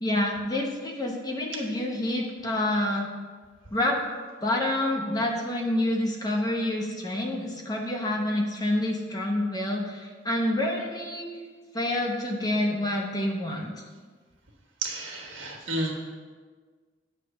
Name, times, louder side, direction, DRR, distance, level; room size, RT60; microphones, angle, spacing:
voice 1, 0.0-3.1 3.7-4.0 4.4-11.3 11.7-13.7, left 1 dB, 20° left, 0 dB, 0.8 m, -27 dB
voice 2, 14.8-15.9, right 2 dB, 80° right, 0 dB, 1.4 m, -31 dB
8.3 x 3.2 x 5.9 m, 1.5 s
head